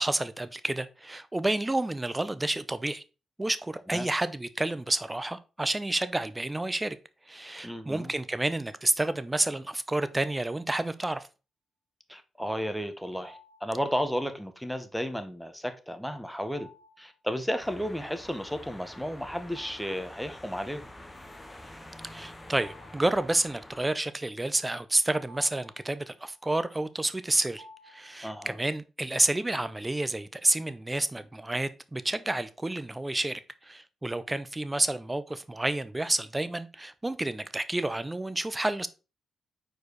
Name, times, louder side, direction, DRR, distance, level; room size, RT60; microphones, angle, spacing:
voice 1, 0.0-3.0 3.4-7.0 7.3-11.3 22.0-38.9, right 2 dB, 20° right, 0.7 m, -30 dB
voice 2, 7.6-8.1 12.1-16.7 17.0-20.9 28.2-28.6, equal, ahead, 1.0 m, -33 dB
sound 1, 13.2-13.9 16.5-17.2 19.4-20.2 20.5-20.6 22.1-23.6 24.6-28.5, equal, 80° right, 1.4 m, -55 dB
sound 2, 17.6-23.8, left 1 dB, 20° left, 1.4 m, -47 dB
4.7 x 4.5 x 4.7 m
supercardioid pair, 55°, 0 cm